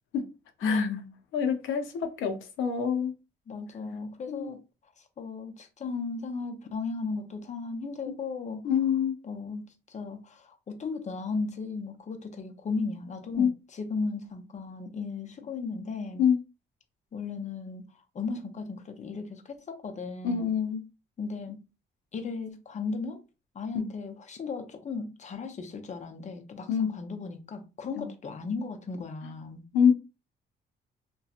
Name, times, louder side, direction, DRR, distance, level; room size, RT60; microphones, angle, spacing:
voice 1, 0.6-1.1 3.5-4.6 5.0-8.7 9.2-16.2 17.1-17.8 18.1-20.5 21.2-21.6 22.1-23.2 23.5-29.6, left 4 dB, 35° left, 0.6 m, -35 dB
voice 2, 1.3-3.1 4.3-4.5 8.6-9.2 13.4-13.5 16.2-16.4 20.2-20.9 23.7-23.9 26.7-27.0 28.0-28.1 29.2-29.3 29.7-29.9, left 7 dB, 85° left, 0.6 m, -26 dB
2.8 x 2.2 x 2.4 m
cardioid pair, 90°, 20 cm